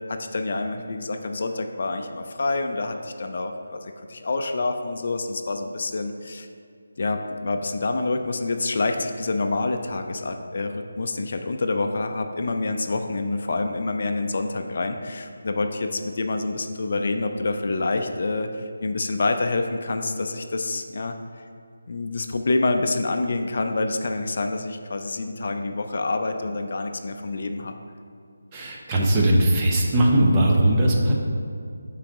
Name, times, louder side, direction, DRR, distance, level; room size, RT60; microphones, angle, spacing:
voice 1, 0.1-6.5 7.0-21.2 21.9-27.7, left 3 dB, 50° left, 5 dB, 0.4 m, -27 dB
voice 2, 28.5-31.1, right 1 dB, 20° right, -2 dB, 0.7 m, -19 dB
5.7 x 4.0 x 4.9 m, 2.3 s
figure-of-eight pair, 165°, 0 cm